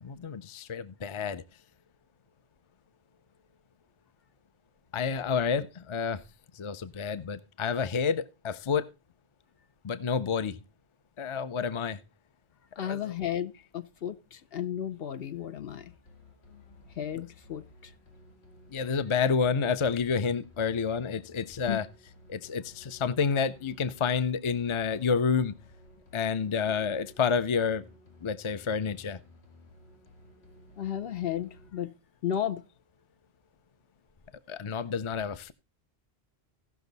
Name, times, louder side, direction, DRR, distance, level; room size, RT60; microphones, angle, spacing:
voice 1, 0.0-1.4 4.9-6.2 6.5-8.8 9.8-10.6 11.2-12.0 12.8-13.1 18.7-21.9 22.3-25.5 26.1-27.8 28.2-29.2 34.5-35.5, left 6 dB, 35° left, 0.6 m, -29 dB
voice 2, 12.8-15.8 17.0-17.6 21.7-21.8 30.8-31.9 32.2-32.6, left 10 dB, 70° left, 0.9 m, -33 dB
sound 1, 15.7-31.7, left 1 dB, 85° left, 2.4 m, -55 dB
16.5 x 6.0 x 4.0 m
omnidirectional pair, 1.1 m